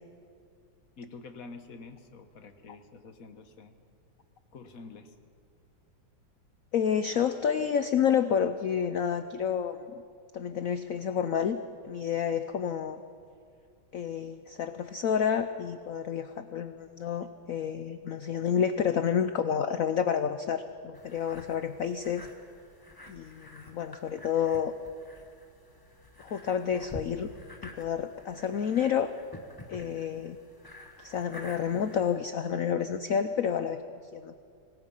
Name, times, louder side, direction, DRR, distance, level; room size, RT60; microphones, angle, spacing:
voice 1, 1.0-3.7 4.5-5.2, left 4 dB, 45° left, 8 dB, 1.4 m, -47 dB
voice 2, 6.7-9.9 10.3-11.6 11.8-13.0 13.9-22.3 23.1-24.7 26.2-27.3 27.6-29.1 29.7-30.4 31.0-33.8 34.1-34.3, left 8 dB, 75° left, 10 dB, 0.7 m, -29 dB
sound 1, 20.9-32.2, left 1 dB, 15° left, 1.2 m, -49 dB
25.0 x 19.5 x 5.5 m, 2.4 s
omnidirectional pair, 2.3 m